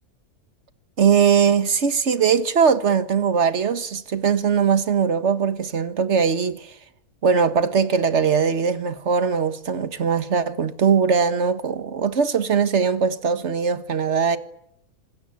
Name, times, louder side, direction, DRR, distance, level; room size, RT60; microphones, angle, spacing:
voice 1, 1.0-6.7 7.2-14.4, right 6 dB, 50° right, 1.7 m, -20 dB
27.0 x 20.5 x 9.5 m
omnidirectional pair, 1.6 m